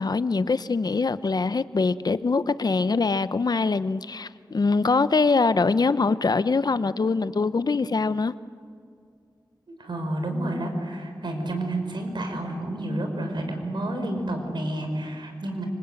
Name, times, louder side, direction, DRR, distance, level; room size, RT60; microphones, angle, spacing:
voice 1, 0.0-8.3, left 4 dB, 60° left, 0.8 m, -23 dB
voice 2, 9.7-15.7, right 1 dB, 90° right, 4.6 m, -30 dB
26.5 x 24.5 x 9.1 m
wide cardioid pair, 70°, 8 cm